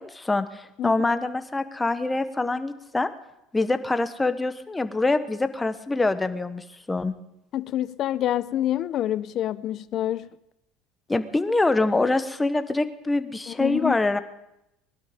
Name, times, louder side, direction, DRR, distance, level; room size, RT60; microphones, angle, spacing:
voice 1, 0.0-3.1 3.5-7.1 11.1-14.2, left 2 dB, 10° left, 1.1 m, -25 dB
voice 2, 7.5-10.3 13.5-14.0, left 12 dB, 50° left, 0.6 m, -27 dB
20.5 x 12.0 x 5.2 m
supercardioid pair, 110°, 0 cm